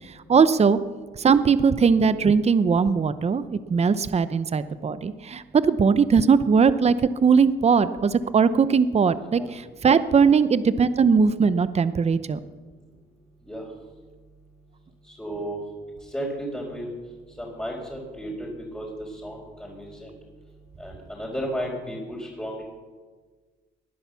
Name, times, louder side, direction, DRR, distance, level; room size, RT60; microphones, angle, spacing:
voice 1, 0.3-0.8 1.2-6.9 7.2-12.4, right 5 dB, 30° right, 14 dB, 0.8 m, -20 dB
voice 2, 15.2-15.6 16.1-16.9 17.4-18.5 18.7-18.9 19.2-20.1 20.8-22.6, equal, 5° left, -5 dB, 4.4 m, -33 dB
19.5 x 10.5 x 7.0 m, 1.4 s
cardioid pair, 90°, 20 cm